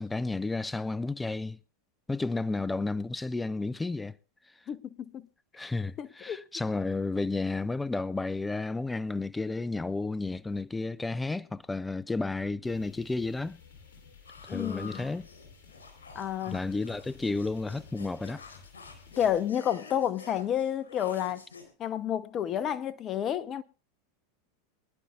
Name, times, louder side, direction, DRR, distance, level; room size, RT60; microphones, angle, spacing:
voice 1, 0.0-1.6 2.1-4.1 5.5-13.6 14.4-15.3 16.5-18.4, left 3 dB, 10° left, 0.5 m, -32 dB
voice 2, 4.7-5.3 6.0-6.4 14.5-15.1 16.1-16.6 19.2-21.5 21.8-23.6, left 10 dB, 35° left, 0.9 m, -30 dB
sound 1, 12.6-19.5, left 5 dB, 65° left, 4.2 m, -54 dB
sound 2, 14.3-21.7, left 4 dB, 80° left, 3.9 m, -49 dB
24.0 x 11.0 x 2.4 m
hypercardioid pair, 90°, 0 cm